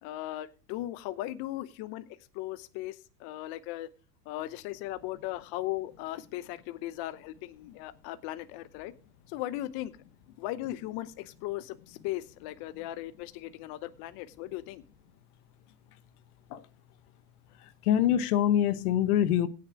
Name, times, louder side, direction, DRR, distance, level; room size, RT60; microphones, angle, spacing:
voice 1, 0.0-3.9 4.3-8.9 9.3-9.9 10.4-14.8, left 15 dB, 50° left, 0.9 m, -37 dB
voice 2, 17.6-19.5, left 10 dB, 75° left, 1.2 m, -25 dB
17.0 x 6.7 x 4.7 m
supercardioid pair, 115°, 45 cm